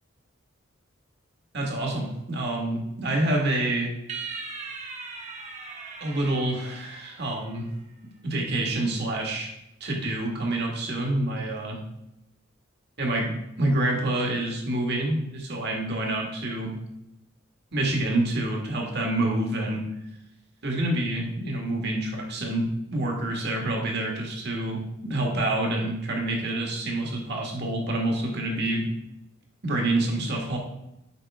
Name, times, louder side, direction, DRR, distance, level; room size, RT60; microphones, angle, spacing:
voice 1, 1.5-3.9 6.0-7.7 8.2-9.5 9.8-11.8 13.0-13.3 13.6-16.7 17.7-19.8 20.6-28.8 29.6-30.6, right 1 dB, 55° right, 0 dB, 1.8 m, -27 dB
sound 1, 4.1-7.6, right 4 dB, 35° right, 1.1 m, -39 dB
7.9 x 5.3 x 3.5 m, 0.86 s
head